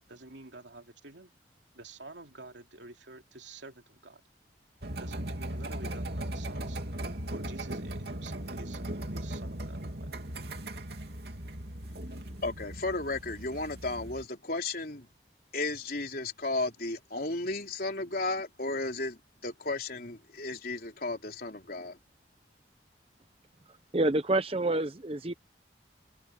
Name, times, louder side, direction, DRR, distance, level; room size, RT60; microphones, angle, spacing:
voice 1, 0.0-1.3 1.7-4.2 5.0-10.1, right 3 dB, 85° right, 2.8 m, -49 dB
sound 1, 4.8-14.2, right 1 dB, 60° right, 3.0 m, -38 dB
voice 2, 12.4-15.1 15.5-22.0, left 2 dB, 50° left, 4.1 m, -34 dB
voice 3, 23.9-25.3, right 2 dB, 30° right, 0.7 m, -27 dB
open air
head